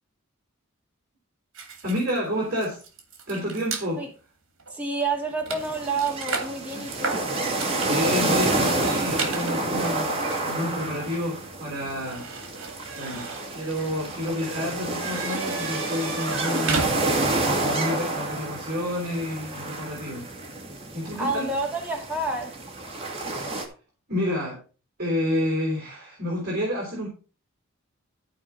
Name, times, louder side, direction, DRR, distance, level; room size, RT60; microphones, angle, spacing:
sound 1, 1.5-3.9 4.6-4.7 5.0-17.5, right 4 dB, 65° right, 2.5 m, -35 dB
voice 1, 1.8-2.8 3.3-4.0 6.7-6.9 7.5-12.3 13.0-16.9 17.3-20.3 20.9-21.5 24.1-24.6 25.0-27.1, left 1 dB, 45° right, 3.6 m, -29 dB
voice 2, 4.7-7.3 21.2-22.6, right 3 dB, 5° right, 2.3 m, -29 dB
sound 2, 5.6-23.7, right 2 dB, 25° right, 2.2 m, -29 dB
13.5 x 4.9 x 5.8 m
head